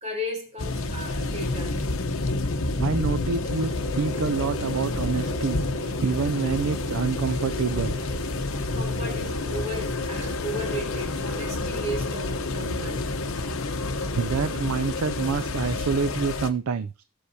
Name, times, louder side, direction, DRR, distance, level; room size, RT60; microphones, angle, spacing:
voice 1, 0.0-1.8 8.7-13.1, equal, 30° right, 2.4 m, -35 dB
sound 1, 0.6-16.5, left 2 dB, 80° left, 1.0 m, -29 dB
voice 2, 2.8-8.0 8.6-8.7 13.4-13.5 13.8-17.0, right 5 dB, 90° right, 0.5 m, -27 dB
Rain, 3.4-10.7, right 6 dB, 55° right, 2.6 m, -44 dB
17.5 x 6.5 x 2.8 m
head